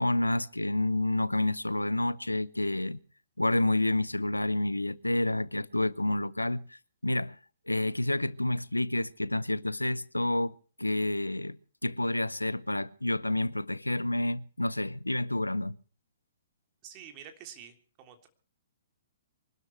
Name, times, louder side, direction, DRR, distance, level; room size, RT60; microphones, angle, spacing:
voice 1, 0.0-3.0 3.4-7.4 7.7-11.6 11.8-15.7, left 1 dB, 90° left, 0.7 m, -29 dB
voice 2, 16.8-18.3, right 9 dB, 30° right, 3.4 m, -48 dB
24.0 x 13.0 x 4.6 m
figure-of-eight pair, 120°, 0 cm